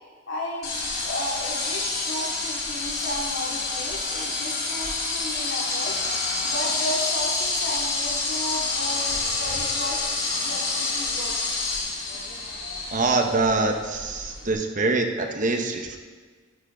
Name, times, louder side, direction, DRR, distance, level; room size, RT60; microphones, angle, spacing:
voice 1, 0.3-6.0 6.4-11.4, left 1 dB, 70° left, -3 dB, 2.5 m, -34 dB
sound 1, 0.6-14.5, left 3 dB, 50° left, 3.6 m, -28 dB
voice 2, 12.9-16.0, right 3 dB, 40° right, 5 dB, 0.8 m, -24 dB
11.5 x 10.5 x 3.8 m, 1.5 s
head